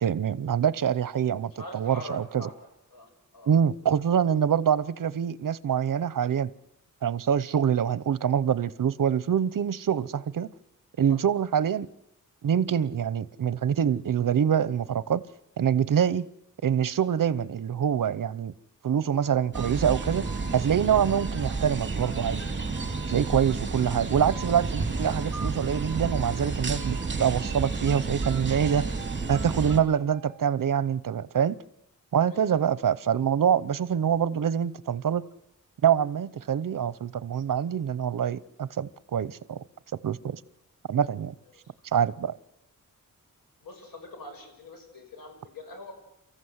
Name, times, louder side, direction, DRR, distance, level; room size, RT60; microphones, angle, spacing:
voice 1, 0.0-2.5 3.5-6.5 7.0-10.5 11.0-11.9 12.4-15.2 15.6-16.3 16.6-18.5 18.8-20.3 20.5-22.4 23.1-28.9 29.3-31.6 32.1-35.2 35.8-39.6 40.0-40.4 40.9-41.3 41.9-42.3, right 8 dB, 75° right, 0.8 m, -25 dB
voice 2, 1.6-2.5 2.9-3.5 11.1-11.2 23.2-23.3 32.3-32.6 41.5-41.6 43.6-45.9, left 1 dB, 90° left, 6.2 m, -43 dB
sound 1, 19.2-21.7 22.0-24.6 25.0-27.5 27.9-30.5, right 2 dB, ahead, 6.9 m, -46 dB
sound 2, 19.5-29.8, right 4 dB, 35° right, 2.8 m, -31 dB
29.0 x 14.5 x 8.0 m
wide cardioid pair, 135°, 33 cm